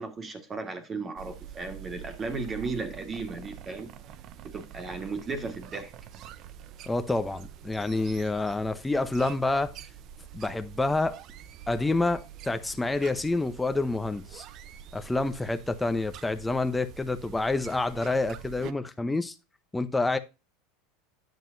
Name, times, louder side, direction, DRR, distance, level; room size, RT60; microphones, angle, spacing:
voice 1, 0.0-3.9 4.4-5.9, right 3 dB, 25° right, 1.8 m, -35 dB
sound 1, 1.2-18.7, right 10 dB, 50° right, 0.7 m, -46 dB
voice 2, 6.9-9.8 10.3-11.2 11.7-14.4 14.9-19.3 19.7-20.2, left 2 dB, 10° left, 0.9 m, -28 dB
9.2 x 7.3 x 2.7 m
supercardioid pair, 110°, 0 cm